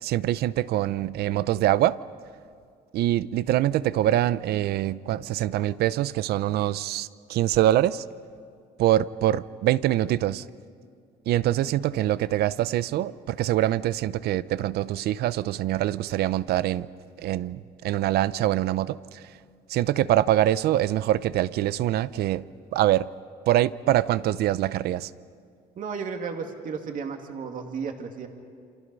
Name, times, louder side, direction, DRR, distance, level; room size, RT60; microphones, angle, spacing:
voice 1, 0.0-2.0 2.9-8.0 8.8-10.4 11.3-16.9 17.2-19.2 19.7-22.4 22.7-23.1 23.5-25.1, right 13 dB, 70° right, 17 dB, 0.6 m, -24 dB
voice 2, 25.8-28.3, right 5 dB, 50° right, 4 dB, 2.4 m, -33 dB
28.5 x 27.0 x 5.5 m, 2.3 s
cardioid pair, 110°, 17 cm